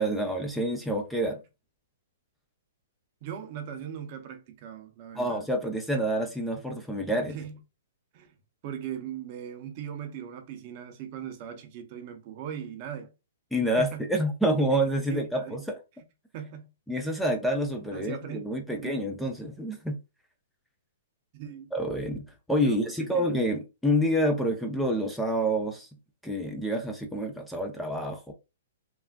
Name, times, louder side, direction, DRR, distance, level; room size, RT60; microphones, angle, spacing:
voice 1, 0.0-1.4 5.2-7.4 13.5-15.8 16.9-20.0 21.7-25.9 26.2-28.3, equal, ahead, 0.5 m, -28 dB
voice 2, 3.2-5.4 7.3-7.6 8.1-8.3 8.6-13.1 13.8-14.0 15.1-15.7 16.3-16.7 17.9-18.4 18.7-19.0 21.3-21.7 22.6-23.3, right 9 dB, 45° right, 0.6 m, -39 dB
3.3 x 2.4 x 2.2 m
hypercardioid pair, 130°, 0 cm